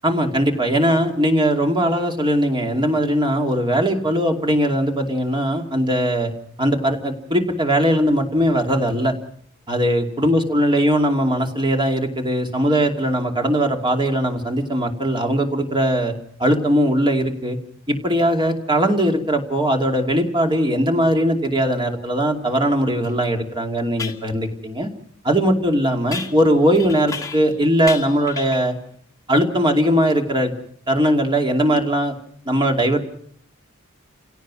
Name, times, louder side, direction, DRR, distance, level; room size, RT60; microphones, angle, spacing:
voice 1, 0.0-6.3 6.6-9.1 9.7-16.1 16.4-17.6 17.9-24.9 25.2-28.7 29.3-30.5 30.9-32.1 32.5-33.0, equal, 20° right, 3 dB, 2.7 m, -20 dB
sound 1, 23.0-23.1 24.0-24.3 26.1-27.6 27.9-28.7, left 5 dB, 15° left, 1.6 m, -33 dB
30.0 x 17.0 x 6.3 m, 0.62 s
head